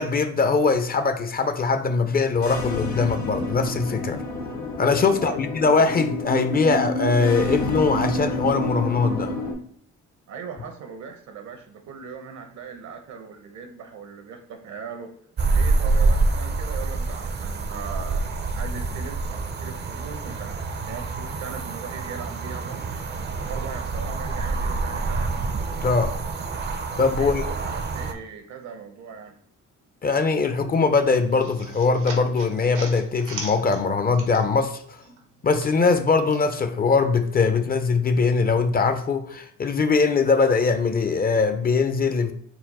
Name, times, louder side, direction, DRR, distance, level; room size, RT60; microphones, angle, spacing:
voice 1, 0.0-4.2 4.8-9.3 25.8-26.1 27.0-27.4 30.0-35.0 35.4-42.3, left 4 dB, 30° left, 0.4 m, -21 dB
sound 1, 2.4-9.5, left 2 dB, 75° left, 1.1 m, -29 dB
voice 2, 5.0-5.4 10.3-15.1 15.5-23.0 23.4-25.4 27.1-29.4, right 6 dB, 70° right, 0.8 m, -39 dB
sound 2, 15.4-28.1, right 3 dB, 35° right, 0.5 m, -26 dB
sound 3, 31.1-34.7 35.0-36.4, right 3 dB, 90° right, 1.0 m, -39 dB
4.2 x 2.1 x 4.1 m
cardioid pair, 90°, 30 cm